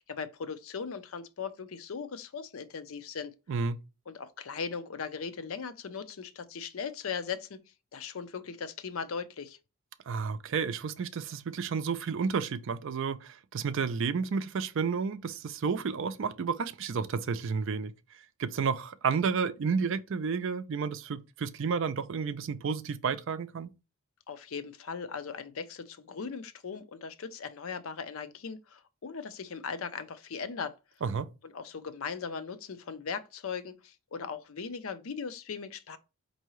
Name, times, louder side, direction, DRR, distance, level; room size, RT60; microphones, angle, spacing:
voice 1, 0.0-3.3 4.1-7.6 7.9-9.6 24.3-30.7 31.4-36.0, left 5 dB, 75° left, 0.5 m, -38 dB
voice 2, 10.1-17.9 18.4-23.7 31.0-31.3, right 5 dB, 60° right, 0.4 m, -31 dB
4.6 x 2.7 x 3.1 m
head